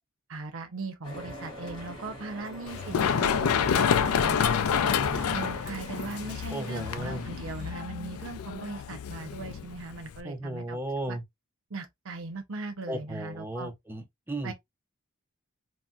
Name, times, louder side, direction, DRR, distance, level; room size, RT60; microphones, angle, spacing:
voice 1, 0.3-4.5 5.3-10.8 11.1-11.2 11.7-13.7 14.4-14.5, right 3 dB, 65° right, 0.7 m, -39 dB
sound 1, 1.0-7.7, equal, 25° left, 1.8 m, -43 dB
Run, 2.7-10.2, left 7 dB, 85° left, 0.4 m, -28 dB
voice 2, 4.7-5.3 6.5-7.2 10.2-11.2 12.9-14.5, right 1 dB, 10° right, 0.4 m, -35 dB
4.0 x 2.1 x 2.3 m
head